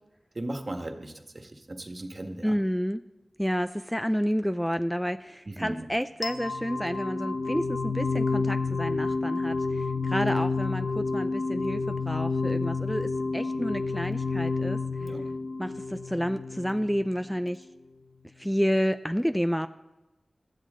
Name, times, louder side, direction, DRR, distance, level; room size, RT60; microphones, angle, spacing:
voice 1, 0.3-2.6 5.4-5.9 15.0-15.3, right 1 dB, 50° right, 5 dB, 1.6 m, -37 dB
voice 2, 2.4-3.0 3.4-14.8 15.6-17.6 18.4-19.7, equal, ahead, 10 dB, 0.5 m, -30 dB
sound 1, 6.2-17.2, left 4 dB, 80° left, 0.7 m, -29 dB
20.5 x 13.5 x 3.8 m, 1.0 s
wide cardioid pair, 50°, 0 cm